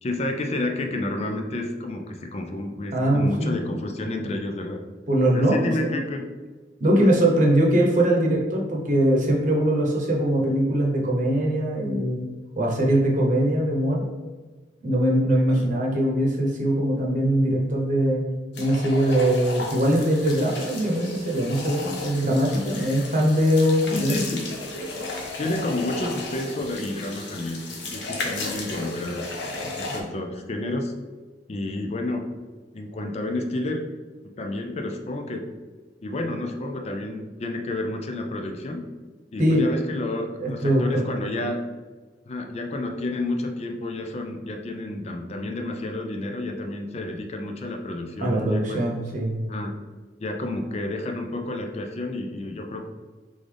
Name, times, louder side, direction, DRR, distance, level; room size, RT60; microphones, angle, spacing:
voice 1, 0.0-4.8 5.3-6.2 6.9-7.1 15.5-15.7 23.9-24.5 25.4-29.2 29.8-30.9 31.5-32.3 32.7-33.8 34.2-35.5 36.0-38.8 39.3-41.6 42.2-48.9 49.5-49.8 50.2-52.9, left 2 dB, 35° left, 3 dB, 0.4 m, -30 dB
voice 2, 2.9-3.6 5.1-6.0 6.8-12.3 12.6-14.0 14.8-18.2 18.5-24.1 39.4-39.6 40.4-41.0 48.2-49.4, right 1 dB, 45° right, -1 dB, 0.9 m, -22 dB
sound 1, 18.5-30.0, left 2 dB, 75° left, 0.9 m, -34 dB
3.8 x 3.7 x 3.3 m, 1.3 s
head